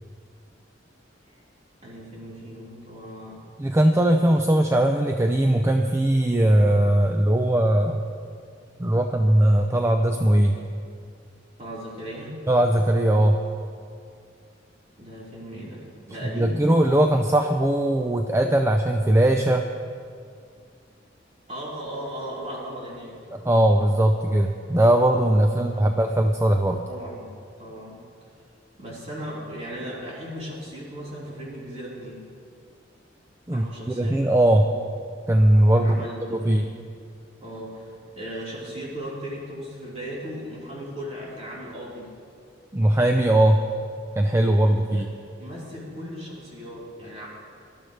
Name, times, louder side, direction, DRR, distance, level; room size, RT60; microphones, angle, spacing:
voice 1, 1.8-3.4 11.6-12.4 15.0-16.7 21.5-23.2 25.5-26.0 26.8-27.3 27.6-28.0 28.8-32.2 33.5-34.3 35.8-36.7 37.4-42.1 44.7-45.0 45.4-47.3, equal, 35° right, -7 dB, 4.1 m, -37 dB
voice 2, 3.6-8.0 8.8-10.5 12.5-13.4 16.3-19.7 23.3-26.8 33.5-33.6 34.0-34.7 35.3-36.7 42.7-43.6 44.2-45.1, right 1 dB, 15° right, 4 dB, 0.5 m, -20 dB
19.0 x 12.0 x 3.3 m, 2.2 s
head